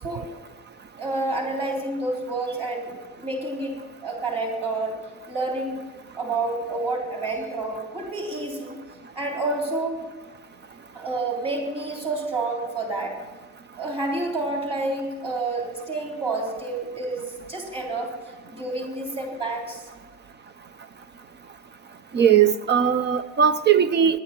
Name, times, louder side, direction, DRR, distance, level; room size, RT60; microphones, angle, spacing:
voice 1, 1.0-2.9 3.2-5.0 5.3-5.8 6.1-8.8 9.2-10.0 10.9-13.2 13.8-18.1 18.5-19.8, right 2 dB, 15° right, 0 dB, 3.5 m, -29 dB
voice 2, 22.1-24.2, right 8 dB, 35° right, 13 dB, 0.5 m, -19 dB
10.5 x 9.9 x 7.4 m, 1.3 s
cardioid pair, 130°, 33 cm